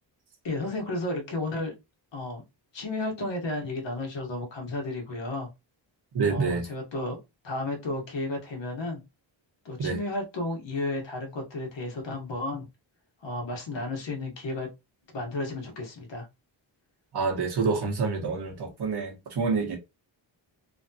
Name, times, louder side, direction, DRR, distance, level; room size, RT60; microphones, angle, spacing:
voice 1, 0.4-1.7 2.1-2.4 2.7-5.5 6.3-7.2 7.4-9.0 9.6-12.7 13.2-14.7 15.1-16.3, left 2 dB, 70° left, 1.3 m, -33 dB
voice 2, 6.1-6.6 9.8-10.0 17.1-19.8, right 4 dB, 55° right, 1.1 m, -27 dB
3.2 x 2.3 x 2.7 m
wide cardioid pair, 110°, 46 cm